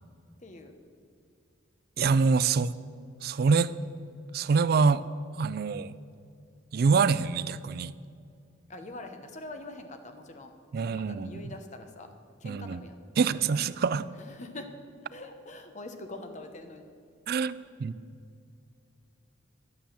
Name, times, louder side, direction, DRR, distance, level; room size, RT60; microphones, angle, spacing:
voice 1, 0.4-0.7 8.7-10.5 10.8-12.1 12.4-13.0 14.1-14.7 15.1-16.9, left 2 dB, 35° left, 6 dB, 1.0 m, -44 dB
voice 2, 2.0-2.8 3.2-3.7 4.3-5.0 5.4-6.0 6.7-7.9 10.7-11.5 12.4-12.8 13.2-14.1 17.3-17.9, right 5 dB, 50° right, 16 dB, 0.3 m, -25 dB
11.5 x 7.1 x 7.3 m, 2.4 s
head